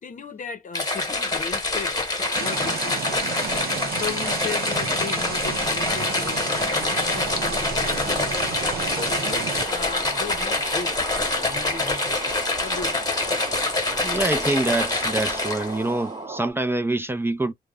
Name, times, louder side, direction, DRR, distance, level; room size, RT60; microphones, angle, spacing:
voice 1, 0.0-2.0 2.4-3.2 3.8-8.6 8.9-13.1, left 6 dB, 55° left, 0.7 m, -37 dB
sound 1, 0.7-15.9, left 2 dB, 25° left, 1.1 m, -26 dB
sound 2, 2.3-16.5, right 3 dB, 30° right, 0.8 m, -37 dB
sound 3, 2.3-9.6, right 7 dB, 70° right, 0.6 m, -33 dB
voice 2, 14.0-17.5, right 2 dB, 15° right, 0.4 m, -25 dB
2.3 x 2.1 x 3.4 m
cardioid pair, 80°, 16 cm